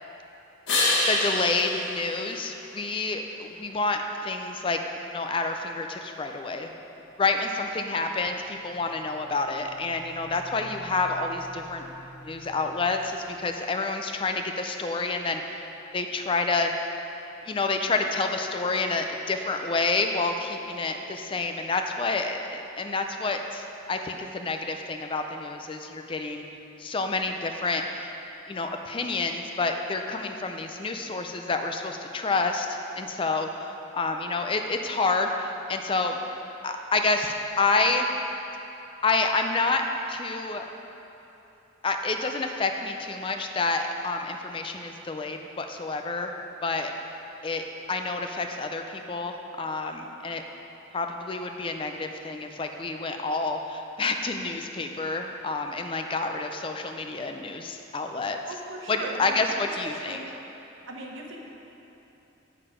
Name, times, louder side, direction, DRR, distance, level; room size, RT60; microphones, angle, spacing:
sound 1, 0.7-3.2 9.0-13.0, left 2 dB, 70° left, 1.5 m, -31 dB
voice 1, 1.1-4.8 5.1-6.7 7.2-11.9 12.1-15.6 15.9-16.7 17.4-26.4 26.8-28.1 28.5-33.5 33.9-36.2 36.6-38.1 39.0-40.7 41.8-46.3 46.6-46.9 47.4-50.4 50.9-58.4 58.9-60.2, left 3 dB, 25° left, 5 dB, 0.4 m, -28 dB
voice 2, 58.5-59.4 59.8-60.3 60.9-61.4, right 2 dB, 80° right, 0 dB, 1.1 m, -38 dB
8.6 x 6.6 x 5.0 m, 3.0 s
head